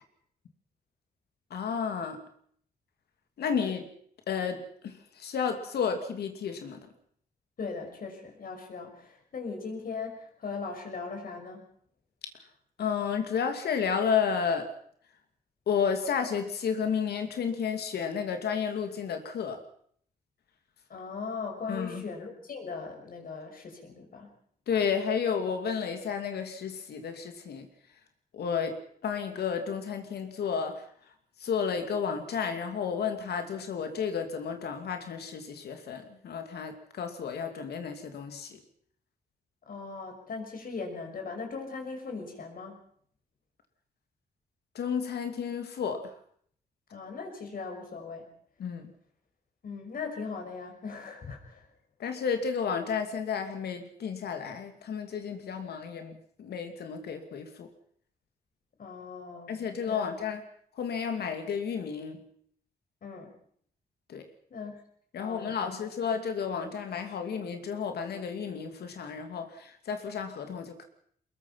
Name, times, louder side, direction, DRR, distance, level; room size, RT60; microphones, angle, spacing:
voice 1, 1.5-2.2 3.4-3.9 4.3-6.9 12.8-14.7 15.7-19.6 21.7-22.1 24.7-27.7 28.3-28.8 29.0-30.9 31.4-38.6 44.7-46.1 48.6-48.9 52.0-57.7 59.5-60.4 60.8-62.2 64.1-64.2 65.1-70.8, left 6 dB, 90° left, 6 dB, 2.6 m, -32 dB
voice 2, 7.6-11.7 20.9-24.3 39.7-42.8 46.9-48.3 49.6-51.7 58.8-59.6 59.8-60.1 63.0-63.3 64.5-64.8 65.2-65.7, left 4 dB, 60° left, 4 dB, 6.0 m, -39 dB
23.5 x 21.0 x 5.8 m, 0.63 s
cardioid pair, 105°, 16 cm